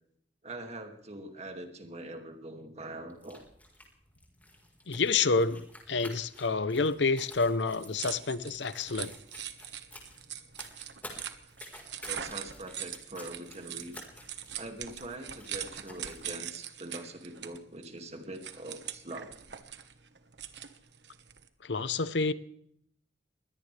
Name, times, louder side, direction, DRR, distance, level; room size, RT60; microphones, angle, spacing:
voice 1, 0.4-3.5 12.0-14.1 14.6-19.5, right 1 dB, 40° right, 2.4 m, -43 dB
sound 1, 3.1-16.3, left 1 dB, 10° left, 4.4 m, -52 dB
voice 2, 4.9-9.1 21.6-22.3, left 4 dB, 80° left, 0.9 m, -28 dB
sound 2, 7.6-21.5, right 10 dB, 70° right, 1.4 m, -42 dB
22.0 x 17.0 x 3.4 m
head